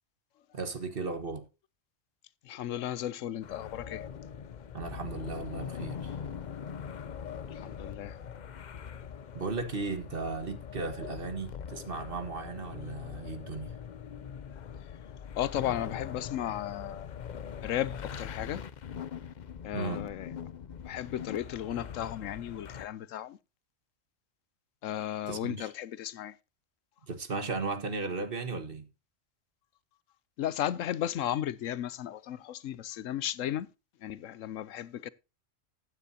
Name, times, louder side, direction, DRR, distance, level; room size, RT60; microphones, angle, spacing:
voice 1, 0.5-1.4 4.7-6.2 9.3-13.7 19.7-20.1 25.3-25.7 27.1-28.9, right 3 dB, 45° right, 1.5 m, -36 dB
voice 2, 2.5-4.0 7.5-8.2 15.4-17.1 17.6-18.6 19.6-20.3 20.9-23.4 24.8-26.3 30.4-33.7 34.0-35.1, left 11 dB, 80° left, 1.1 m, -35 dB
sound 1, 3.4-22.9, left 7 dB, 45° left, 0.6 m, -42 dB
15.0 x 9.5 x 2.7 m
omnidirectional pair, 1.3 m